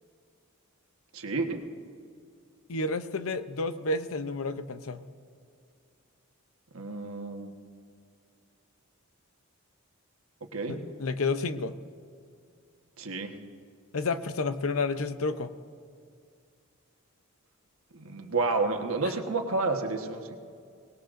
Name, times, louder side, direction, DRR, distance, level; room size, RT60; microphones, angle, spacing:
voice 1, 1.1-1.6 6.7-7.6 10.5-10.8 13.0-13.3 17.9-20.4, right 3 dB, 75° right, 3 dB, 1.3 m, -30 dB
voice 2, 2.7-5.0 10.7-11.8 13.9-15.5 19.0-19.1, left 3 dB, 75° left, 11 dB, 0.7 m, -30 dB
24.5 x 19.5 x 2.6 m, 2.2 s
head